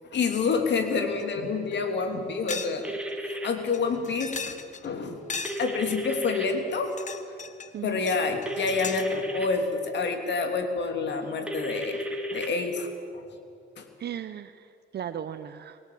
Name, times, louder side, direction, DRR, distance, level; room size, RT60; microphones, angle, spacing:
voice 1, 0.1-2.9 3.3-5.2 5.6-6.9 7.8-12.0 12.3-13.2 13.8-13.9, left 4 dB, 60° left, 6 dB, 3.0 m, -28 dB
sound 1, 1.2-1.3 1.7-1.8 2.5-2.8 3.1-3.2 3.7-4.9 5.3-6.0 6.7-7.7 8.1-9.1, left 5 dB, 35° left, 1.3 m, -37 dB
sound 2, 2.8-3.5 5.4-6.5 8.5-9.5 11.5-12.5, equal, 5° right, 2.9 m, -33 dB
voice 2, 14.0-15.8, right 9 dB, 55° right, 11 dB, 0.8 m, -37 dB
22.5 x 18.0 x 8.7 m, 2.4 s
cardioid pair, 90°, 20 cm